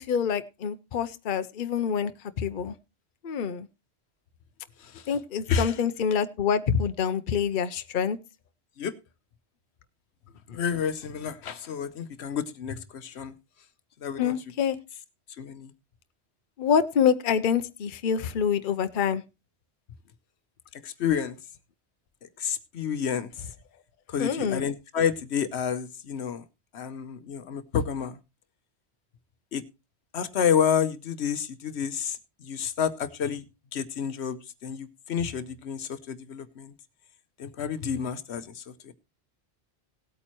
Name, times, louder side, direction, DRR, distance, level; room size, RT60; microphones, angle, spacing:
voice 1, 0.0-2.1 2.4-2.7 3.2-3.7 5.1-8.2 14.2-14.8 16.6-19.2 24.2-24.6, left 7 dB, 55° left, 10 dB, 0.8 m, -26 dB
voice 2, 4.8-5.2 5.5-5.8 8.8-9.0 10.5-13.3 14.0-14.4 15.4-15.7 20.7-21.4 22.2-23.5 24.1-26.4 26.7-28.2 29.5-29.6 30.1-33.4 33.7-36.7 37.4-38.9, left 7 dB, 80° left, 13 dB, 1.1 m, -30 dB
18.0 x 8.6 x 3.0 m, 0.27 s
omnidirectional pair, 1.1 m